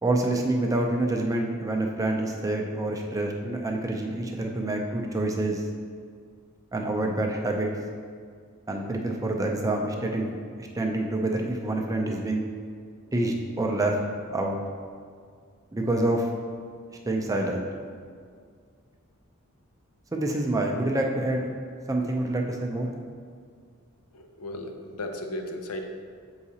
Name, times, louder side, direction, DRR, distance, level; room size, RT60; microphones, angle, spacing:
voice 1, 0.0-5.6 6.7-7.7 8.7-10.3 10.6-12.5 13.1-14.0 14.3-14.6 15.7-16.3 17.1-17.7 20.1-21.5 21.9-22.9, right 2 dB, 15° right, 1 dB, 0.4 m, -27 dB
voice 2, 24.1-25.8, left 1 dB, 85° left, 4 dB, 0.6 m, -35 dB
7.3 x 4.8 x 2.8 m, 2.1 s
head